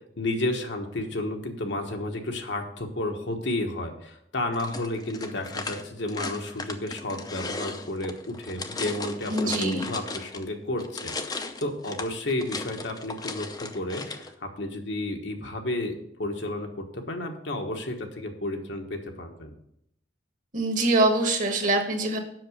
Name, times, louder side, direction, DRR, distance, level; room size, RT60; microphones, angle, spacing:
voice 1, 0.2-19.5, left 1 dB, 70° left, 3 dB, 1.3 m, -32 dB
sound 1, 4.5-10.5 10.8-14.3, left 3 dB, 20° left, 0.6 m, -36 dB
voice 2, 9.3-9.9 20.5-22.2, right 2 dB, 45° right, 4 dB, 1.5 m, -24 dB
7.7 x 6.0 x 6.5 m, 0.74 s
head